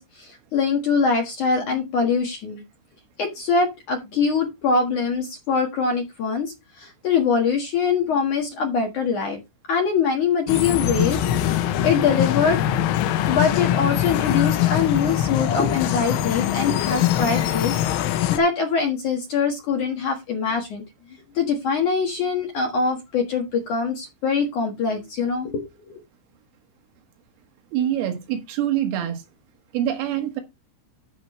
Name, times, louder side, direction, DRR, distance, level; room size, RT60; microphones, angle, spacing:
voice 1, 0.0-2.6 3.2-9.4 9.7-12.6 13.3-20.8 21.3-26.0, left 5 dB, 60° left, 2.2 m, -23 dB
sound 1, 10.5-18.4, left 11 dB, 80° left, 3.5 m, -22 dB
voice 2, 27.7-29.2 29.7-30.4, right 11 dB, 85° right, 4.2 m, -25 dB
13.5 x 6.1 x 3.1 m
omnidirectional pair, 5.7 m